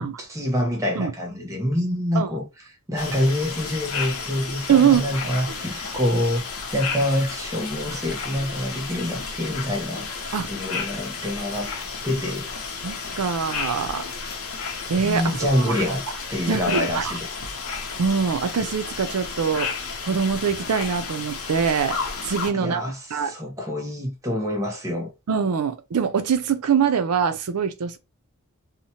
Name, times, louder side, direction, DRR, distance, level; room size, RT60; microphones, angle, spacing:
voice 1, 0.0-2.4 2.9-6.4 6.7-10.1 10.5-11.7 12.0-12.5 15.0-16.0 16.3-17.3 22.5-25.1, left 1 dB, 15° right, 0.7 m, -26 dB
sound 1, 3.0-22.5, left 5 dB, 70° left, 0.7 m, -32 dB
voice 2, 4.7-5.2 10.3-10.5 12.8-14.1 14.9-16.0 16.5-17.1 18.0-19.7 20.0-22.0 22.2-22.8 23.1-23.3 25.3-28.0, right 6 dB, 85° right, 0.5 m, -23 dB
2.8 x 2.1 x 2.7 m
head